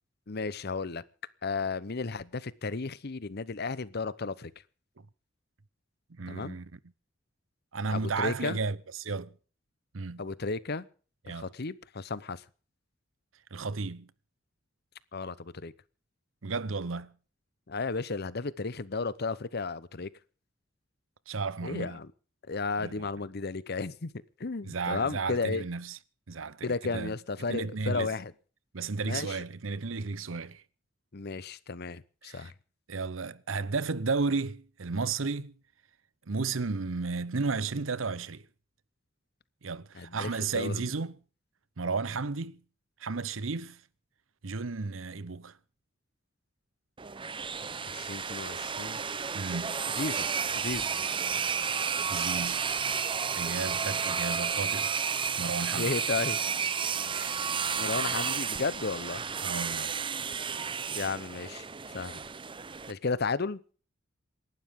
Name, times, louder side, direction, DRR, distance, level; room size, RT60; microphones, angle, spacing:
voice 1, 0.3-1.0 1.4-4.5 6.3-6.6 7.9-8.6 10.2-10.9 11.3-12.4 15.1-15.7 17.7-20.1 21.6-22.1 22.5-24.1 24.4-25.6 26.6-28.3 29.0-29.4 31.1-32.5 39.9-40.9 47.9-49.0 50.0-50.3 50.5-50.9 55.7-56.4 57.8-59.2 60.9-61.7 61.9-62.2 62.9-63.6, left 4 dB, 55° left, 0.9 m, -33 dB
voice 2, 6.1-6.8 7.7-9.4 9.9-10.3 11.2-11.5 13.5-14.1 16.4-17.2 21.3-22.0 22.8-23.1 24.6-26.0 26.3-27.2 27.5-28.1 28.7-30.6 32.2-32.5 32.9-35.6 36.3-38.4 39.6-41.2 41.8-42.6 43.0-43.8 44.4-45.6 49.3-49.8 52.1-52.7 53.3-54.9 55.4-55.9 57.1-57.3 59.4-60.0, right 4 dB, 90° right, 0.8 m, -33 dB
sound 1, 47.0-62.9, right 6 dB, 25° right, 0.7 m, -32 dB
28.0 x 12.0 x 3.7 m
head